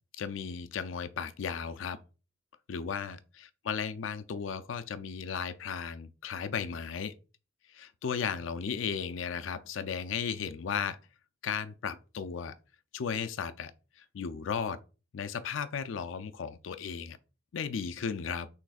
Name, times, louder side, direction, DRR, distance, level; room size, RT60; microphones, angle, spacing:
voice 1, 0.2-2.0 2.7-7.1 7.7-11.0 11.4-12.5 12.9-13.7 14.0-14.8 15.1-17.2 17.5-18.5, left 6 dB, 70° left, 0.4 m, -35 dB
6.1 x 3.2 x 2.4 m
head